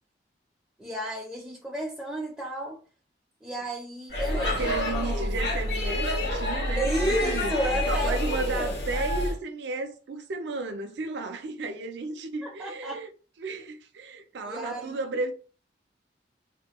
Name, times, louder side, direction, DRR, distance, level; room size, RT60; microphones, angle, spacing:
voice 1, 0.8-2.8 3.4-4.7 5.0-5.1 6.8-8.8 12.4-13.0 14.4-15.0, right 1 dB, 5° right, 0.4 m, -32 dB
Speech / Shout / Subway metro underground, 4.1-9.3, left 1 dB, 70° left, 1.0 m, -28 dB
voice 2, 4.2-7.5 7.9-13.1 13.4-15.3, right 3 dB, 75° right, 0.4 m, -34 dB
2.2 x 2.1 x 2.9 m
head